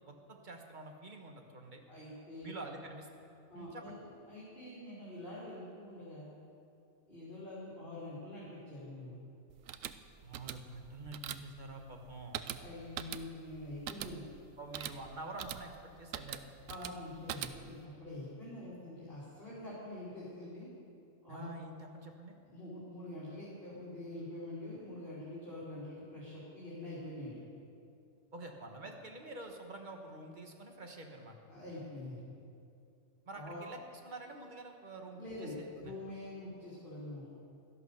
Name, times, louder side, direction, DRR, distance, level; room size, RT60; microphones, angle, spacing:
voice 1, 0.1-1.8 2.4-3.3 3.5-3.9 10.2-12.4 14.6-16.4 21.3-22.4 28.3-31.4 33.2-33.8 34.0-35.9, right 2 dB, 35° right, 3 dB, 1.4 m, -47 dB
voice 2, 1.9-2.6 3.5-3.9 4.3-6.4 7.1-9.2 12.5-14.3 16.7-20.7 21.2-21.5 22.5-27.4 31.5-32.2 33.3-33.6 35.1-37.3, left 1 dB, 35° left, -9 dB, 3.4 m, -45 dB
sound 1, 9.5-17.9, right 10 dB, 70° right, 0.9 m, -44 dB
13.0 x 11.0 x 6.6 m, 2.5 s
omnidirectional pair, 1.5 m